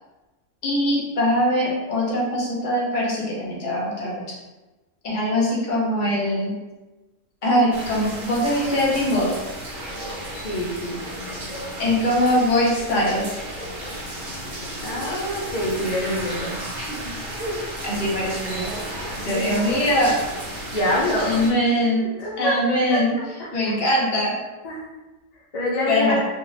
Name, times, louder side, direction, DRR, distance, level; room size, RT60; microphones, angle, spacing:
voice 1, 0.6-4.2 5.0-6.6 7.4-9.4 11.8-13.4 17.8-18.8 19.1-20.2 21.2-22.1 22.4-23.2 23.5-24.4 25.9-26.2, left 1 dB, 45° left, -4 dB, 0.7 m, -22 dB
sound 1, 7.7-21.5, right 1 dB, 45° right, 1.0 m, -33 dB
voice 2, 10.4-11.0 14.8-16.6 16.9-17.0 17.4-17.6 19.3-19.7 20.7-21.4 22.2-23.0 23.4-23.5 24.6-24.8 25.5-26.2, left 1 dB, 70° left, -4 dB, 0.3 m, -26 dB
2.5 x 2.2 x 3.1 m, 1.1 s
omnidirectional pair, 1.4 m